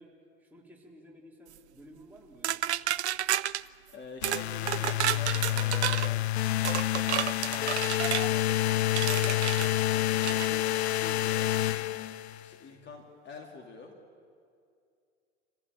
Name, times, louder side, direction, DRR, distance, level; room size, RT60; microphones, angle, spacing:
voice 1, 0.0-2.7, equal, 5° right, -3 dB, 4.1 m, -54 dB
sound 1, 2.4-3.6 4.2-4.4 4.7-6.1 6.6-8.3 9.0-9.7 10.2-10.5, right 12 dB, 70° right, 0.6 m, -30 dB
voice 2, 3.9-6.2 7.2-7.8 8.3-10.7 11.0-11.5 12.4-13.9, left 4 dB, 30° left, 1 dB, 2.6 m, -46 dB
sound 2, 4.2-12.5, left 14 dB, 60° left, 0.7 m, -28 dB
26.0 x 15.0 x 9.4 m, 2.3 s
figure-of-eight pair, 80°, 35 cm